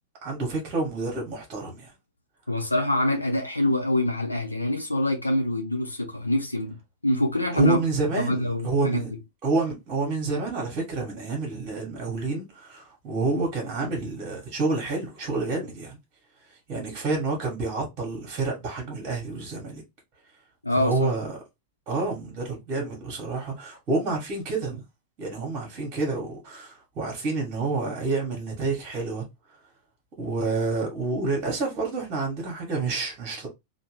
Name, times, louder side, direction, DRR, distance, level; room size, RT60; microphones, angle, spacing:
voice 1, 0.2-1.9 7.5-9.1 9.4-16.0 16.5-19.8 20.8-21.4 21.9-24.8 25.2-29.3 30.2-33.5, right 3 dB, 35° right, 1.2 m, -29 dB
voice 2, 2.5-6.8 7.0-7.8 8.2-9.0 20.6-21.1, left 1 dB, 85° left, 0.8 m, -25 dB
3.0 x 2.2 x 3.1 m
figure-of-eight pair, 90°, 0 cm